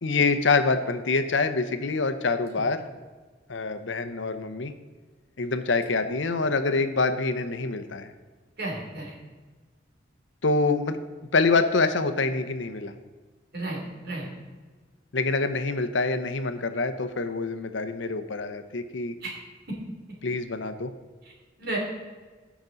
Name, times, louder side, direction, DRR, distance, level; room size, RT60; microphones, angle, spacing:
voice 1, 0.0-2.8 3.5-4.7 5.4-8.1 10.4-11.0 11.3-12.9 15.1-19.1 20.2-20.9, left 3 dB, 80° left, 9 dB, 0.8 m, -25 dB
voice 2, 8.6-9.2 13.5-14.3 19.2-19.3 19.7-19.8 21.6-21.8, right 2 dB, 55° right, -1 dB, 2.9 m, -33 dB
16.0 x 6.1 x 3.9 m, 1.4 s
head